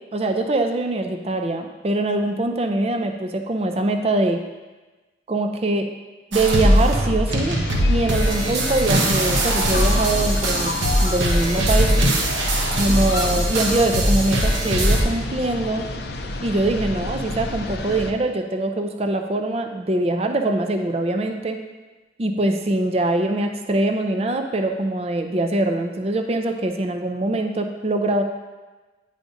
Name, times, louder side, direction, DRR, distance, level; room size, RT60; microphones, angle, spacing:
voice 1, 0.1-4.4 5.3-5.9 6.3-7.6 7.9-10.7 11.0-12.0 12.7-15.9 16.4-21.6 22.2-28.2, right 2 dB, 35° right, 5 dB, 0.4 m, -23 dB
sound 1, 6.3-15.0, equal, 85° right, 1.0 m, -20 dB
sound 2, 7.3-18.1, left 2 dB, 55° left, 0.5 m, -30 dB
9.4 x 4.9 x 2.6 m, 1.2 s
head